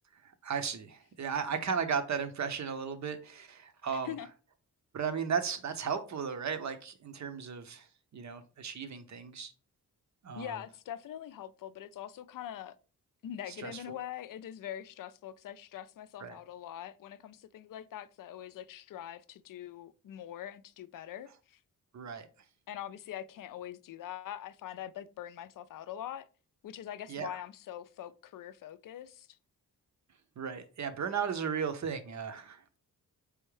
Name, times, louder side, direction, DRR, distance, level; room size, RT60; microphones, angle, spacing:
voice 1, 0.2-4.1 4.9-7.9 8.1-9.5 10.2-10.6 13.5-13.9 16.2-16.4 21.9-22.3 27.1-27.3 30.4-32.8, right 6 dB, 50° right, 0.7 m, -35 dB
voice 2, 3.9-4.3 10.4-12.8 13.2-21.6 22.7-26.3 26.6-29.3, left 11 dB, 60° left, 0.4 m, -43 dB
4.4 x 3.5 x 3.2 m
cardioid pair, 90°, 37 cm